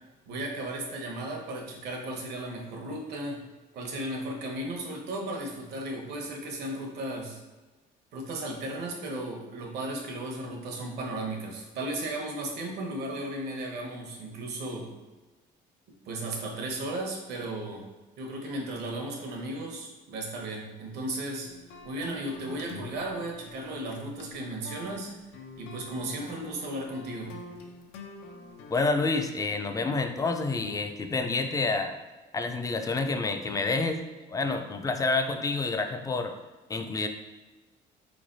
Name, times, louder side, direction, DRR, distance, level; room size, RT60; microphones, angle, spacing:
voice 1, 0.3-3.4 3.7-7.4 8.1-14.9 16.0-17.8 18.2-21.5 21.8-25.1 25.6-27.3, right 1 dB, 75° right, 1 dB, 0.9 m, -35 dB
sound 1, 21.4-28.8, left 3 dB, 85° left, 0.5 m, -45 dB
voice 2, 28.7-31.9 32.3-34.0 34.3-36.3 36.7-37.1, left 3 dB, 20° left, 6 dB, 0.3 m, -28 dB
3.9 x 3.2 x 2.6 m, 1.2 s
cardioid pair, 110°, 17 cm